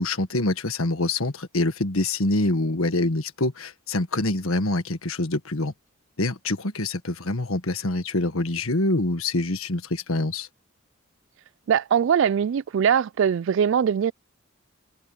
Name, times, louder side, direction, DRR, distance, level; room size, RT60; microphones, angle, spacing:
voice 1, 0.0-5.7 6.2-10.5, left 2 dB, 80° left, 1.6 m, -25 dB
voice 2, 11.7-14.1, right 8 dB, 60° right, 0.3 m, -21 dB
head